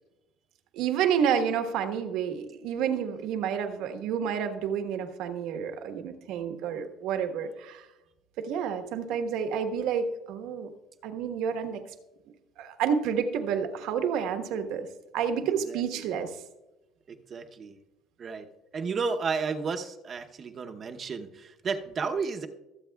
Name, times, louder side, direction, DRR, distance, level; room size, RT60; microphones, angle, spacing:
voice 1, 0.7-7.9 8.4-10.7 11.0-11.8 12.6-14.9 15.1-16.3, right 7 dB, 75° right, 6 dB, 1.3 m, -29 dB
voice 2, 15.4-15.8 17.1-17.8 18.2-18.5 18.7-22.5, right 5 dB, 35° right, 5 dB, 0.8 m, -32 dB
24.0 x 8.2 x 2.3 m, 1.0 s
cardioid pair, 130°, 0 cm